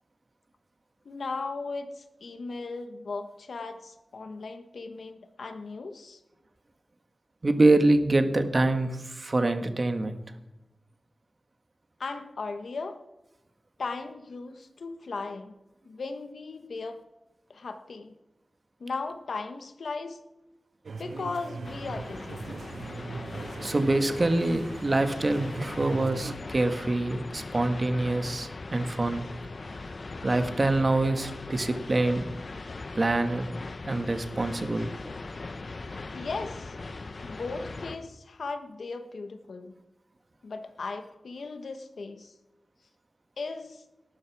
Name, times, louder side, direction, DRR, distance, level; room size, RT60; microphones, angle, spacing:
voice 1, 1.0-6.2 12.0-12.9 13.8-15.5 15.8-17.0 17.5-18.1 18.8-20.2 21.0-22.5 36.1-36.7 37.2-39.7 40.4-42.3 43.4-43.8, left 3 dB, 85° left, 8 dB, 1.2 m, -37 dB
voice 2, 7.4-10.2 23.6-29.3 30.2-32.2 32.9-33.5 33.9-34.9, right 2 dB, 40° right, 8 dB, 1.5 m, -25 dB
sound 1, 20.8-26.3, right 4 dB, 80° right, 0.7 m, -40 dB
sound 2, 21.6-38.0, left 3 dB, 55° left, 1.0 m, -40 dB
18.5 x 12.0 x 4.8 m, 0.96 s
wide cardioid pair, 90°, 0 cm